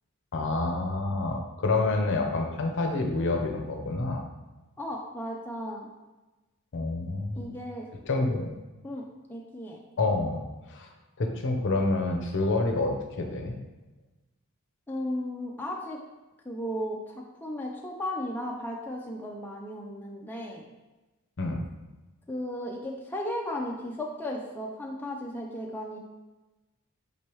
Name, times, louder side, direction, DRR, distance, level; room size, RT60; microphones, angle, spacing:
voice 1, 0.3-4.2 6.7-7.5 8.1-8.5 10.0-10.4 10.7-10.9 11.2-13.6 21.4-21.6, left 2 dB, 55° left, 3 dB, 0.6 m, -28 dB
voice 2, 4.8-5.9 7.4-7.9 8.8-9.0 9.3-9.8 14.9-16.0 16.5-20.7 22.3-26.0, left 1 dB, 10° left, -2 dB, 0.4 m, -35 dB
5.2 x 3.2 x 3.0 m, 1.1 s
head